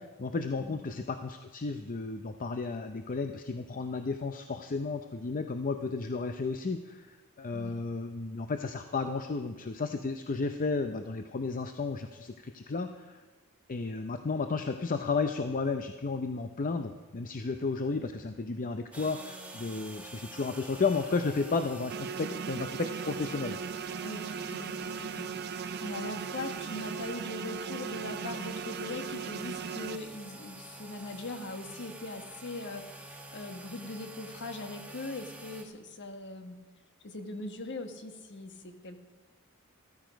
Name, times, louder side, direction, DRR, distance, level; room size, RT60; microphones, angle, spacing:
voice 1, 0.0-13.2 13.7-23.6, left 4 dB, 40° left, 7 dB, 0.6 m, -33 dB
sound 1, 18.9-35.6, right 1 dB, 5° right, 1.5 m, -48 dB
sound 2, 21.9-30.0, right 6 dB, 45° right, 0.4 m, -38 dB
voice 2, 24.0-36.6 37.0-39.0, left 2 dB, 55° left, 6 dB, 1.4 m, -41 dB
14.5 x 13.5 x 5.1 m, 1.2 s
head